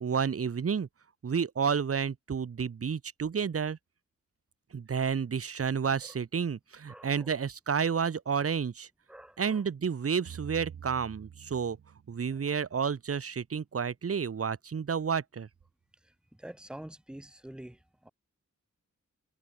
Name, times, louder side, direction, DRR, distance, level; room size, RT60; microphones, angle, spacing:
voice 1, 0.0-0.9 1.2-3.8 4.7-8.9 9.4-11.8 12.1-15.5, right 6 dB, 50° right, 1.1 m, -30 dB
voice 2, 6.9-7.3 9.1-9.6 16.4-18.1, right 1 dB, 5° right, 0.6 m, -46 dB
sound 1, 10.3-12.7, right 8 dB, 75° right, 1.0 m, -47 dB
wide cardioid pair, 140°, 29 cm